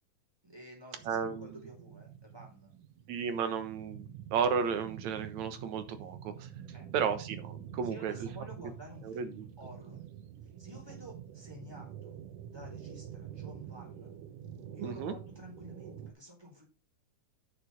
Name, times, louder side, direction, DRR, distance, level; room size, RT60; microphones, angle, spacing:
voice 1, 0.4-2.7 6.7-6.9 7.8-10.0 10.6-12.1 12.5-14.1 14.7-16.6, equal, 5° right, 0 dB, 4.1 m, -50 dB
sound 1, 1.0-16.1, right 9 dB, 85° right, 2.6 m, -47 dB
voice 2, 1.1-1.6 3.1-6.5 6.9-8.1 9.0-9.5 14.8-15.2, right 6 dB, 70° right, 9 dB, 2.4 m, -33 dB
8.9 x 6.9 x 5.2 m, 0.31 s
omnidirectional pair, 3.6 m